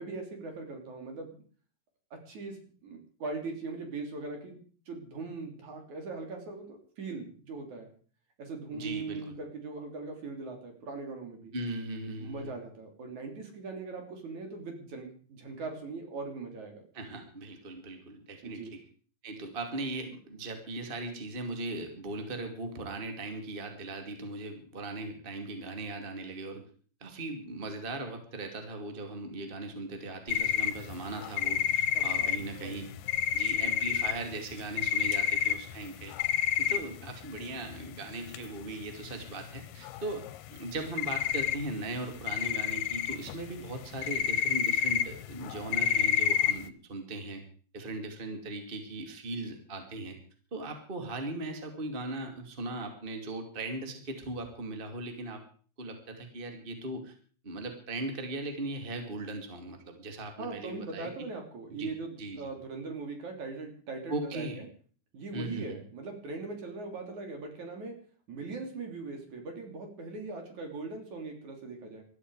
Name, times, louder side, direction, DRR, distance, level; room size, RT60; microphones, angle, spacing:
voice 1, 0.0-1.4 2.1-4.6 4.9-7.9 8.4-11.5 12.2-16.8 18.4-18.7 31.9-32.3 32.6-32.7 60.4-64.7 65.1-67.9 68.3-72.0, right 3 dB, 60° right, 4 dB, 4.5 m, -40 dB
voice 2, 8.7-9.4 11.5-12.5 16.9-18.8 19.2-26.6 27.0-32.9 33.3-36.1 36.6-40.2 40.5-47.4 47.7-50.2 50.5-55.4 55.8-57.1 57.4-61.3 61.8-61.9 62.2-62.5 64.1-64.6 65.3-65.8, right 2 dB, 20° right, 5 dB, 2.2 m, -38 dB
sound 1, 30.3-37.1 37.4-37.5 37.7-37.8 38.1-38.4 38.8-38.9 39.1-39.6 39.8-40.7 41.0-42.0 42.3-46.7, left 9 dB, 85° left, 2.6 m, -29 dB
20.5 x 13.5 x 4.8 m, 0.43 s
omnidirectional pair, 3.9 m